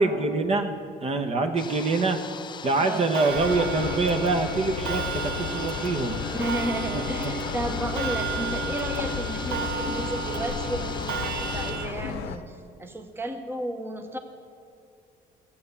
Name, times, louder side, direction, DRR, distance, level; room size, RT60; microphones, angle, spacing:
voice 1, 0.0-2.2 2.6-6.3 6.9-7.0, right 3 dB, 40° right, 6 dB, 1.0 m, -25 dB
sound 1, 1.6-12.2, left 6 dB, 25° left, 0.4 m, -40 dB
voice 2, 2.8-3.1 6.3-14.2, right 1 dB, 15° right, 5 dB, 0.9 m, -33 dB
Clock, 3.1-11.9, right 7 dB, 75° right, 0.7 m, -33 dB
sound 2, 3.3-12.4, left 8 dB, 75° left, 0.7 m, -33 dB
14.0 x 8.6 x 6.8 m, 2.3 s
cardioid pair, 110°, 17 cm